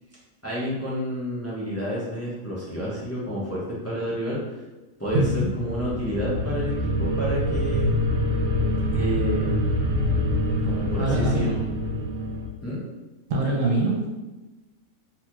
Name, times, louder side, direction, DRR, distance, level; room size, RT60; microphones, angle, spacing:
voice 1, 0.4-4.4 5.0-7.9 8.9-9.5 10.6-11.6 12.6-12.9, equal, 15° left, -8 dB, 0.5 m, -30 dB
voice 2, 5.1-5.5 11.0-11.6 13.3-14.1, right 1 dB, 65° right, -2 dB, 1.0 m, -23 dB
sound 1, 5.1-12.5, left 1 dB, 90° right, 1.1 m, -25 dB
4.1 x 2.3 x 2.9 m, 1.1 s
omnidirectional pair, 1.5 m